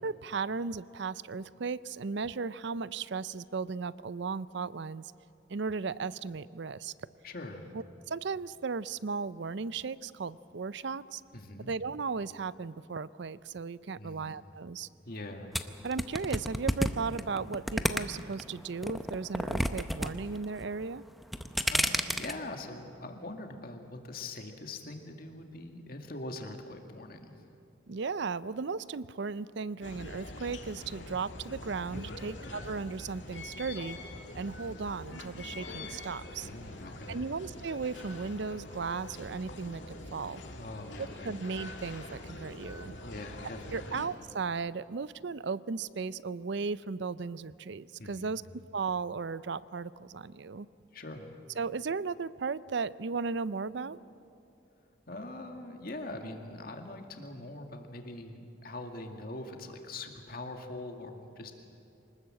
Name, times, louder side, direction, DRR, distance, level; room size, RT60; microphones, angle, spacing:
voice 1, 0.0-5.1 5.5-6.9 7.7-11.2 11.7-14.9 15.8-21.0 27.9-34.0 34.3-36.5 37.1-40.4 41.2-42.9 43.7-48.4 48.7-50.7 51.6-54.0, right 4 dB, 60° right, 18 dB, 0.5 m, -36 dB
voice 2, 7.2-7.7 11.3-11.7 14.0-14.3 15.1-15.5 21.6-27.4 31.9-32.2 36.4-37.2 40.5-41.4 43.0-44.0 48.0-48.4 50.9-51.4 55.1-61.5, left 2 dB, 45° left, 4 dB, 2.1 m, -43 dB
sound 1, 15.5-18.4 18.8-20.1 20.4-20.8 21.2-22.3, equal, ahead, 0.7 m, -29 dB
sound 2, 29.8-44.1, left 2 dB, 65° left, 2.4 m, -44 dB
25.0 x 20.0 x 7.7 m, 2.8 s
head